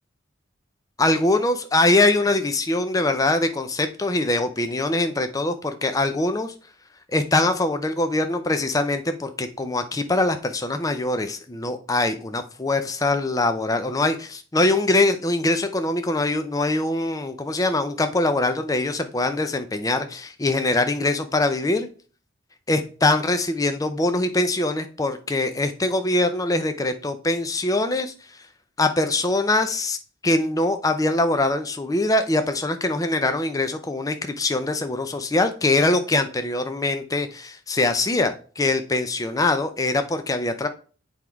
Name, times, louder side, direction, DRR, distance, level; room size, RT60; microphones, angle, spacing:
voice 1, 1.0-6.5 7.1-21.9 22.7-28.1 28.8-30.0 30.2-40.7, left 2 dB, 20° left, 8 dB, 0.5 m, -23 dB
8.1 x 3.6 x 4.5 m, 0.40 s
head